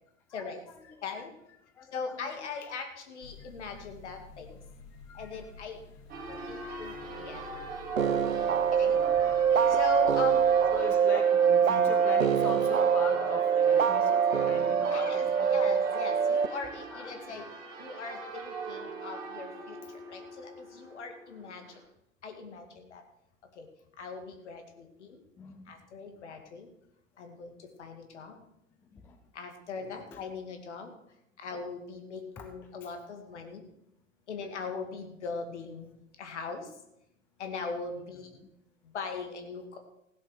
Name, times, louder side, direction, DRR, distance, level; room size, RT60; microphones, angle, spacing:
voice 1, 0.3-2.7 3.4-3.9 4.6-4.7 5.1-5.5 5.8-6.0 6.3-8.1 8.6-9.8 10.7-15.7 16.9-17.2 25.4-25.8 26.2-26.3 28.8-29.2 29.8-30.2 32.4-32.5 32.8-32.9 38.1-38.5, left 4 dB, 5° left, 7 dB, 0.4 m, -43 dB
voice 2, 1.9-4.6 5.1-5.8 6.3-7.5 8.7-9.0 9.7-10.4 13.9-14.5 14.9-17.4 17.8-19.8 20.1-21.7 22.2-23.0 23.6-23.7 24.0-25.2 25.7-26.7 27.2-27.5 27.8-28.4 29.3-30.9 31.4-33.6 34.3-35.9 36.2-36.7 37.4-38.3 38.9-39.8, left 4 dB, 60° left, 5 dB, 2.3 m, -39 dB
sound 1, 3.2-10.8, left 4 dB, 30° left, 1.4 m, -51 dB
Church bell, 6.1-21.8, right 4 dB, 20° right, 2.7 m, -42 dB
sound 2, 8.0-16.5, right 7 dB, 85° right, 0.6 m, -24 dB
16.0 x 7.5 x 6.1 m, 0.82 s
figure-of-eight pair, 100°, 39 cm